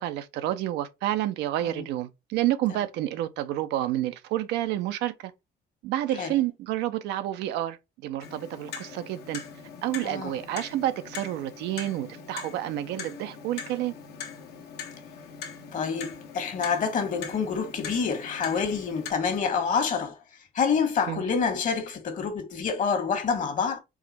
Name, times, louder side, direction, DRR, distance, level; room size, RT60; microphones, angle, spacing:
voice 1, 0.0-5.3 5.8-7.8 8.0-9.4 9.8-13.9 21.1-21.2, right 13 dB, 85° right, 0.6 m, -29 dB
Clock, 8.2-19.1, left 6 dB, 75° left, 1.1 m, -41 dB
voice 2, 10.0-10.4 15.7-20.1 20.5-23.8, left 6 dB, 50° left, 1.4 m, -27 dB
4.7 x 2.2 x 4.1 m
cardioid pair, 110°, 17 cm